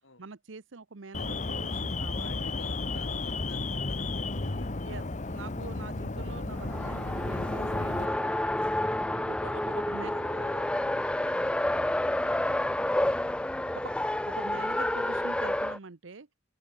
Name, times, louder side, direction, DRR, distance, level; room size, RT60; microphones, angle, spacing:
voice 1, 0.2-2.5 4.8-7.9 9.3-10.1 13.7-13.9 14.3-16.3, right 4 dB, 75° right, 0.9 m, -44 dB
Alarm, 1.1-8.1, left 3 dB, 40° left, 0.9 m, -33 dB
voice 2, 2.1-4.7 7.7-14.1, left 2 dB, 80° left, 5.2 m, -51 dB
Race car auto racing, 6.5-15.8, left 1 dB, 5° left, 0.3 m, -29 dB
head